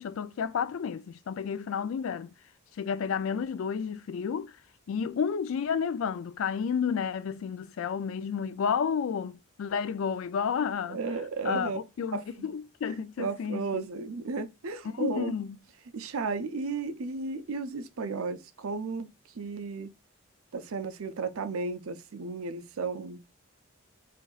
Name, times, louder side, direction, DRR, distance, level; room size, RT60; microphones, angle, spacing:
voice 1, 0.0-2.3 2.8-4.6 4.9-11.0 11.4-13.8 14.9-15.6, left 7 dB, 70° left, 0.3 m, -31 dB
voice 2, 10.9-11.8 12.1-12.5 13.2-15.3 15.9-19.1 19.4-19.9 20.5-23.2, right 4 dB, 75° right, 0.6 m, -34 dB
5.0 x 2.7 x 2.3 m
head